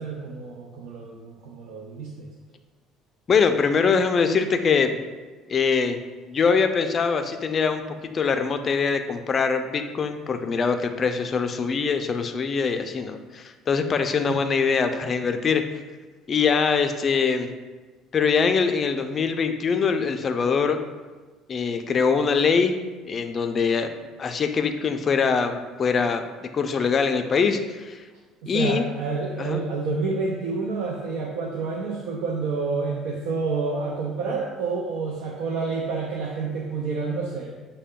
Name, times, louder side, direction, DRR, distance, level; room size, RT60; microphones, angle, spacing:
voice 1, 0.0-2.3 14.3-14.4 28.4-37.5, right 4 dB, 85° right, 0 dB, 0.5 m, -29 dB
voice 2, 3.3-5.0 5.5-6.0 6.3-7.8 8.1-15.6 16.3-17.5 18.1-20.8 21.5-22.8 23.1-28.0 28.5-28.9 29.4-29.6, left 5 dB, 35° left, 7 dB, 0.4 m, -23 dB
6.4 x 2.2 x 3.5 m, 1.3 s
cardioid pair, 125°, 0 cm